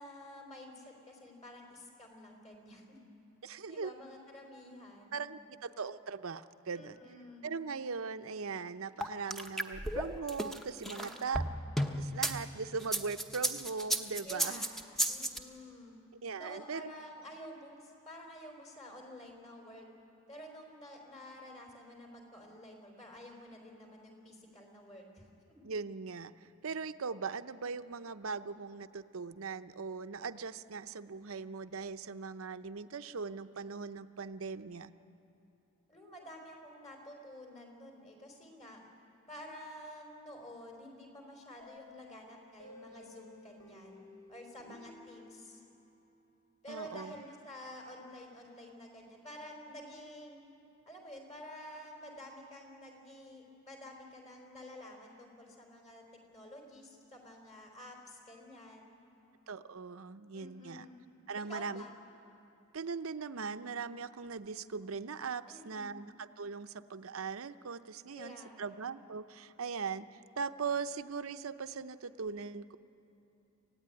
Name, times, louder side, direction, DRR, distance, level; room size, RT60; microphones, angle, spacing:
voice 1, 0.0-3.0 3.4-5.2 6.7-7.5 11.0-11.4 14.2-16.0 16.3-19.9 20.3-25.6 35.9-38.8 39.3-44.0 44.3-45.6 46.6-50.4 50.9-56.0 56.3-59.0 60.3-61.0 61.4-62.0 65.5-65.9 68.1-68.7, left 1 dB, 30° left, 1 dB, 4.1 m, -50 dB
voice 2, 3.4-3.9 5.1-7.0 7.4-11.4 12.0-14.7 16.2-16.9 25.6-34.9 46.7-47.2 59.5-60.9 61.3-61.8 62.7-72.8, right 5 dB, 75° right, 11 dB, 0.7 m, -40 dB
sound 1, 9.0-12.3 12.8-15.4, right 1 dB, ahead, 0.8 m, -33 dB
sound 2, 41.6-46.3, left 2 dB, 70° left, 6.5 m, -56 dB
26.5 x 15.5 x 9.8 m, 2.9 s
head